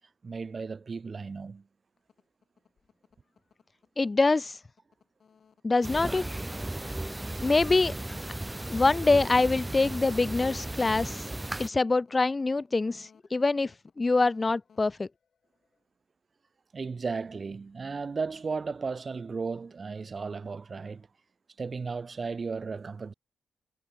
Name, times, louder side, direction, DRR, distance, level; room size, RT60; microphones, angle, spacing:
voice 1, 0.2-1.6 16.7-21.1 21.6-23.1, right 4 dB, 40° right, 0.4 m, -35 dB
sound 1, 2.0-15.8, left 6 dB, 60° left, 7.9 m, -61 dB
voice 2, 4.0-4.6 5.6-6.3 7.4-8.0 8.7-11.2 11.6-13.7 14.0-15.1, left 3 dB, 30° left, 0.4 m, -25 dB
sound 2, 5.8-11.7, right 1 dB, 15° right, 1.3 m, -35 dB
cardioid pair, 70°, 0 cm